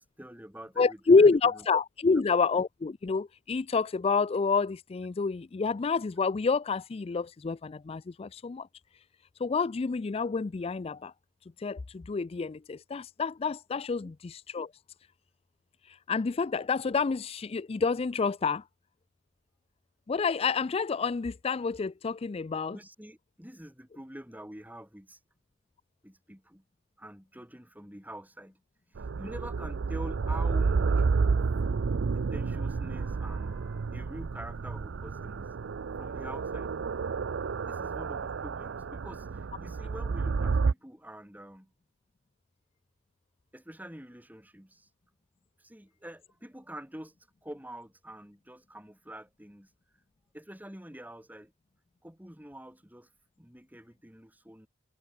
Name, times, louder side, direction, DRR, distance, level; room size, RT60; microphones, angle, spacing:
voice 1, 0.0-1.7 2.0-2.2 14.0-14.1 22.7-25.2 26.0-26.6 27.0-28.6 28.9-31.4 32.1-35.5 36.0-36.7 37.6-41.7 43.5-44.9 45.6-47.1 47.4-49.7 50.3-51.5 52.0-53.1 53.4-54.7, right 1 dB, 10° right, 4.7 m, -46 dB
voice 2, 0.8-8.7 9.4-11.1 11.6-14.7 15.9-18.6 20.1-22.8, left 4 dB, 30° left, 0.4 m, -28 dB
sound 1, 29.0-40.7, right 4 dB, 80° right, 0.5 m, -30 dB
head